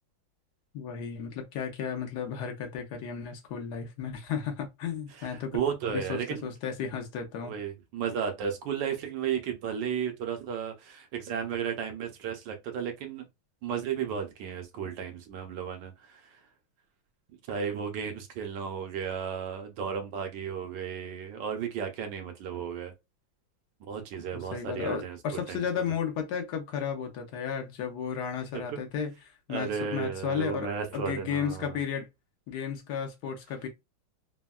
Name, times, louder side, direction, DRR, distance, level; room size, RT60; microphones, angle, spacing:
voice 1, 0.7-5.6 5.9-7.5 24.3-32.1 32.5-33.7, left 7 dB, 70° left, 1.0 m, -34 dB
voice 2, 5.2-6.5 7.4-13.2 13.6-16.4 17.5-22.9 23.9-25.6 28.5-28.8 29.5-31.8, right 7 dB, 75° right, 1.1 m, -34 dB
3.4 x 2.1 x 2.2 m
omnidirectional pair, 2.2 m